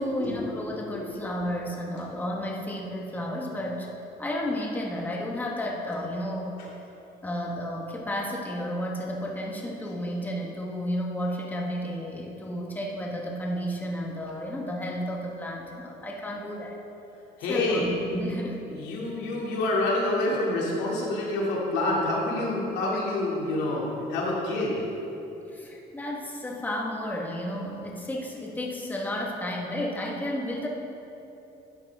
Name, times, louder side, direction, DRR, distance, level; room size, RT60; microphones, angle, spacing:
voice 1, 0.0-3.9 4.2-6.6 7.2-16.8 17.5-18.6 25.5-30.7, equal, 10° left, -2 dB, 1.3 m, -32 dB
voice 2, 0.9-1.2 6.6-6.7 17.4-17.9 18.7-24.8, left 2 dB, 90° left, -4 dB, 2.4 m, -27 dB
12.0 x 8.9 x 3.5 m, 3.0 s
cardioid pair, 110°, 17 cm